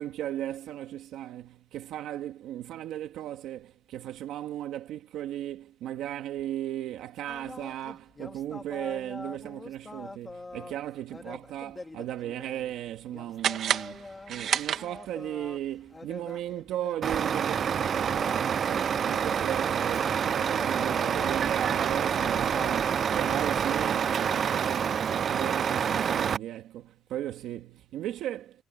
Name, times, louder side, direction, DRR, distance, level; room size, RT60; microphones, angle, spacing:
voice 1, 0.0-28.6, right 12 dB, 85° right, 2.1 m, -36 dB
sound 1, 7.3-23.4, left 3 dB, 20° left, 3.1 m, -45 dB
sound 2, 13.4-15.3, right 9 dB, 70° right, 1.9 m, -30 dB
Truck, 17.0-26.4, right 7 dB, 55° right, 0.4 m, -27 dB
cardioid pair, 90°, 0 cm